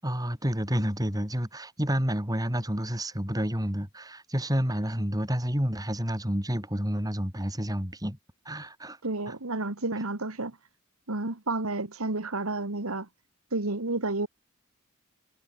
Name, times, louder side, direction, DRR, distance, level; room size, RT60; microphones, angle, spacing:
voice 1, 0.0-8.2 8.5-9.0 9.3-9.4, equal, 15° right, 7.3 m, -29 dB
voice 2, 9.0-10.6 11.1-13.1 13.5-14.3, right 2 dB, 85° right, 2.0 m, -31 dB
head